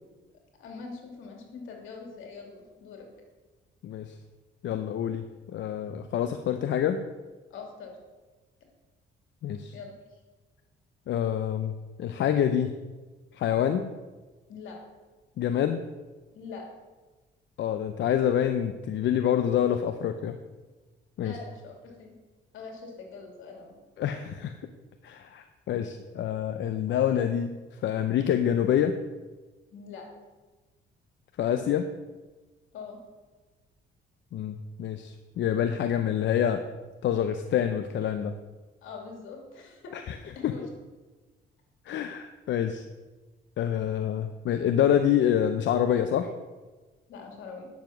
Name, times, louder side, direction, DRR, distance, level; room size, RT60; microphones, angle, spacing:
voice 1, 0.6-3.1 7.5-8.0 9.7-10.2 14.5-14.8 16.3-16.6 21.2-22.1 22.5-23.8 29.7-30.1 32.7-33.0 38.8-39.9 40.3-40.7 47.1-47.7, left 4 dB, 85° left, 2 dB, 2.7 m, -43 dB
voice 2, 3.8-4.1 4.6-7.1 9.4-9.7 11.1-11.7 12.0-12.7 13.4-13.9 15.4-15.8 17.6-20.4 21.2-21.3 24.0-24.6 25.0-29.0 31.4-31.9 34.3-36.6 37.0-38.4 39.9-40.2 40.4-40.5 41.9-42.8 43.6-46.3, left 9 dB, 70° left, 8 dB, 0.6 m, -27 dB
9.8 x 7.2 x 5.9 m, 1.2 s
cardioid pair, 90°, 20 cm